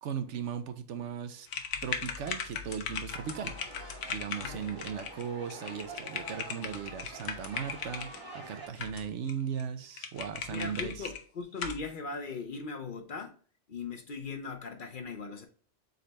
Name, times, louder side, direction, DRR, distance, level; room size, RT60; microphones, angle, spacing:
voice 1, 0.0-11.1, right 7 dB, 80° right, 1.0 m, -38 dB
sound 1, 1.5-8.2 8.8-9.3 9.6-9.7 10.0-11.2 11.6-11.8, left 7 dB, 85° left, 1.1 m, -38 dB
sound 2, 3.1-8.7, right 2 dB, 55° right, 1.6 m, -47 dB
voice 2, 4.4-4.7 10.5-13.3 13.7-15.5, left 4 dB, 50° left, 0.7 m, -39 dB
4.0 x 3.2 x 4.0 m
omnidirectional pair, 1.2 m